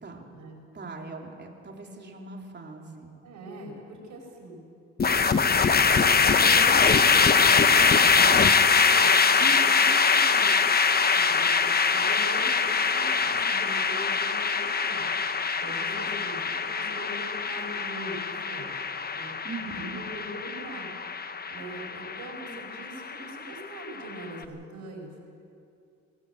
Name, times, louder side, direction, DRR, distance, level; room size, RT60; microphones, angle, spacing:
voice 1, 0.7-3.1 9.4-9.7 19.4-20.0, right 4 dB, 35° right, 1 dB, 3.4 m, -40 dB
voice 2, 3.2-4.6 5.3-5.5 6.2-10.5 11.1-11.5 11.9-18.8 19.1-19.3 19.7-20.9 21.5-25.1, right 1 dB, 75° right, 1 dB, 5.5 m, -42 dB
sound 1, 5.0-24.2, left 5 dB, 30° left, 1.0 m, -23 dB
23.0 x 14.0 x 8.5 m, 2.5 s
cardioid pair, 90°, 30 cm